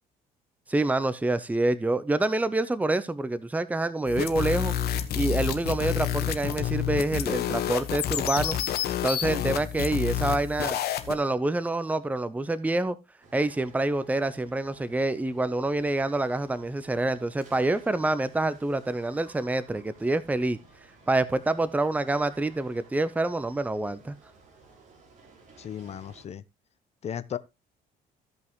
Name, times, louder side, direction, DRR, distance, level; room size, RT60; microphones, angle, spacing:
voice 1, 0.7-4.7 5.1-8.6 9.0-10.8 11.1-13.0 13.3-20.6 21.1-24.1, right 2 dB, 10° right, 0.7 m, -27 dB
sound 1, 4.1-11.1, left 10 dB, 70° left, 1.3 m, -29 dB
voice 2, 9.2-9.7 25.6-26.4 27.0-27.4, left 9 dB, 40° left, 0.8 m, -36 dB
sound 2, 13.2-26.2, right 3 dB, 50° right, 3.7 m, -55 dB
15.5 x 5.5 x 3.1 m
cardioid pair, 110°, 17 cm